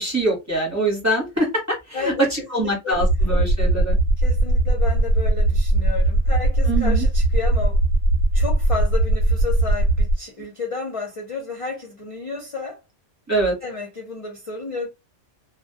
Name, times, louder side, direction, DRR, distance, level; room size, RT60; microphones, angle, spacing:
voice 1, 0.0-1.8 2.0-4.0 6.7-7.1 13.3-13.6, right 2 dB, 15° right, 0.8 m, -23 dB
voice 2, 1.9-3.0 4.2-7.8 8.3-12.8 13.6-14.9, left 4 dB, 45° left, 0.4 m, -31 dB
sound 1, 2.9-10.1, right 1 dB, 60° right, 0.8 m, -19 dB
2.1 x 2.1 x 2.7 m
omnidirectional pair, 1.3 m